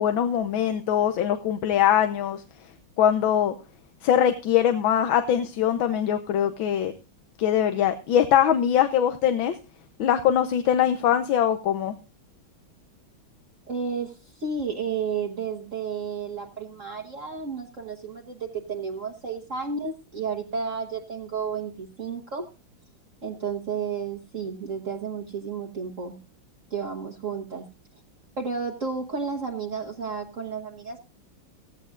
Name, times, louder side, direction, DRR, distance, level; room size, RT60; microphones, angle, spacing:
voice 1, 0.0-2.4 3.0-3.5 4.0-6.9 7.4-9.6 10.0-11.9, left 10 dB, 80° left, 8 dB, 1.6 m, -22 dB
voice 2, 13.7-22.5 23.2-26.2 26.7-27.7 28.4-31.0, right 5 dB, 45° right, 2 dB, 1.5 m, -32 dB
16.5 x 15.0 x 2.5 m, 0.32 s
omnidirectional pair, 2.1 m